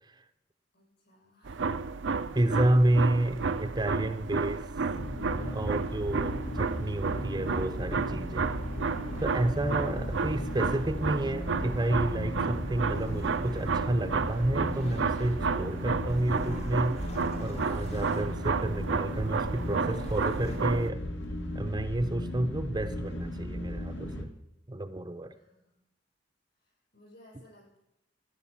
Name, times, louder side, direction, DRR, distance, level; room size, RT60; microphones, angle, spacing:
voice 1, 0.7-1.7 25.3-25.8 26.6-27.8, left 1 dB, 60° left, -3 dB, 7.8 m, -59 dB
sound 1, 1.4-20.9, right 4 dB, 75° right, 0.6 m, -32 dB
voice 2, 2.3-4.7 5.4-8.6 9.2-17.0 17.4-21.0 21.5-24.3 24.7-25.3, right 1 dB, 25° right, 9 dB, 0.6 m, -30 dB
sound 2, 4.9-24.3, left 1 dB, 75° left, 1.8 m, -37 dB
sound 3, 6.7-15.6 16.0-20.8, left 1 dB, 35° left, 1.0 m, -47 dB
15.0 x 9.4 x 7.2 m, 0.84 s
head